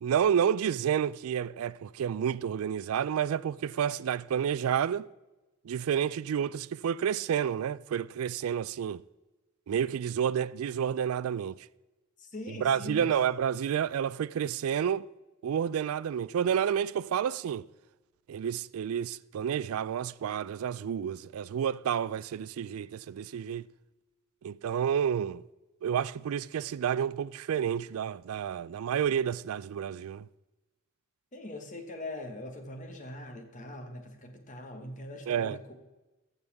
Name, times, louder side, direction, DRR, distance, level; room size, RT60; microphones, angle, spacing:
voice 1, 0.0-5.1 5.6-9.0 9.7-11.6 12.6-15.1 15.4-17.7 18.3-23.7 24.4-25.4 25.8-30.3 35.3-35.6, right 8 dB, 85° right, 0.3 m, -30 dB
voice 2, 12.2-13.1 31.3-35.7, left 1 dB, 35° left, 1.4 m, -42 dB
14.5 x 6.9 x 3.5 m
head